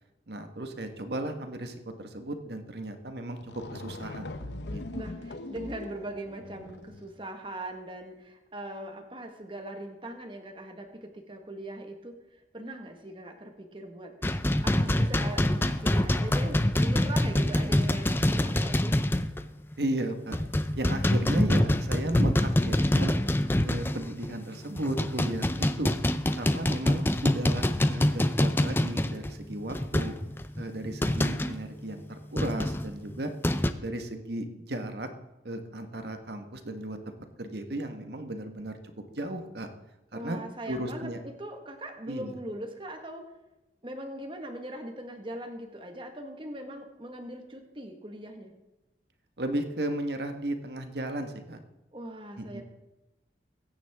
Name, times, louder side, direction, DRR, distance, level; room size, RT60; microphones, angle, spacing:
voice 1, 0.3-5.0 19.8-20.4 20.7-23.2 23.6-25.9 26.4-30.1 30.6-33.3 33.8-35.1 35.4-37.0 37.4-39.7 40.1-40.4 40.7-41.2 42.1-42.3 49.4-51.6 52.4-52.6, right 1 dB, 70° right, 6 dB, 1.5 m, -35 dB
sound 1, 3.1-3.2 3.4-7.2, left 2 dB, 75° left, 0.9 m, -41 dB
voice 2, 4.9-12.2 12.5-19.0 40.1-43.4 43.8-48.5 51.9-52.6, right 1 dB, 30° right, 4 dB, 1.6 m, -40 dB
sound 2, 14.2-19.5 19.7-19.9 20.3-24.3 24.8-31.6 32.4-33.7, left 1 dB, 10° left, 0.5 m, -26 dB
22.0 x 9.8 x 3.6 m, 1.0 s
head